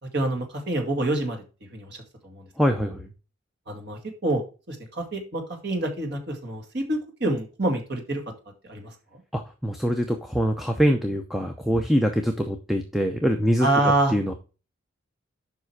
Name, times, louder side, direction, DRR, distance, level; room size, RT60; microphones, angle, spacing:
voice 1, 0.0-2.5 2.8-2.9 3.7-8.2 8.7-9.2 13.6-14.1, right 2 dB, 55° right, 4 dB, 2.2 m, -27 dB
voice 2, 2.6-3.1 9.3-13.7 14.1-14.3, equal, ahead, 5 dB, 0.7 m, -24 dB
7.5 x 5.5 x 4.7 m, 0.33 s
head